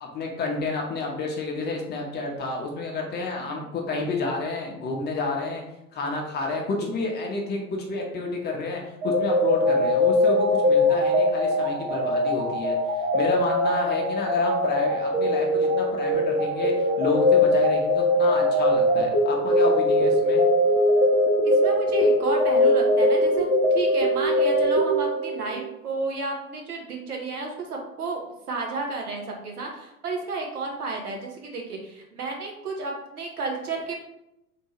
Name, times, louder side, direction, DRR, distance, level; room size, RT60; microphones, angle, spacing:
voice 1, 0.0-5.6 5.9-20.4, left 3 dB, 20° left, 0 dB, 0.7 m, -30 dB
sound 1, 9.0-25.6, left 1 dB, 20° right, 1.0 m, -21 dB
voice 2, 21.4-34.0, right 3 dB, 70° right, 0 dB, 1.2 m, -32 dB
3.7 x 2.7 x 4.2 m, 0.86 s
figure-of-eight pair, 85°, 46 cm